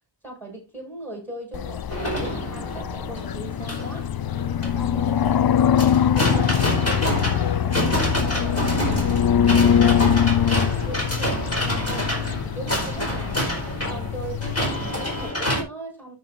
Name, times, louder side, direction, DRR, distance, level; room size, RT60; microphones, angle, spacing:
voice 1, 0.2-4.1 4.6-9.3 9.8-12.1 12.4-13.5 13.9-16.2, right 2 dB, 5° left, 7.0 m, -39 dB
sound 1, 1.5-15.3, left 9 dB, 55° left, 0.5 m, -23 dB
sound 2, 1.9-15.6, equal, 35° left, 4.6 m, -27 dB
13.0 x 7.0 x 2.7 m
wide cardioid pair, 65°, 44 cm